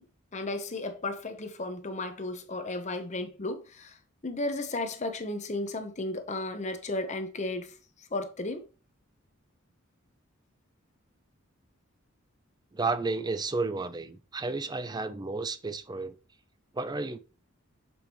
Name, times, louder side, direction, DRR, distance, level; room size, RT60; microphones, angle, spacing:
voice 1, 0.3-4.0 4.2-8.7, left 2 dB, 35° left, 0.8 m, -34 dB
voice 2, 12.7-16.2 16.7-17.2, right 3 dB, 20° right, 0.4 m, -32 dB
7.0 x 5.0 x 3.0 m
head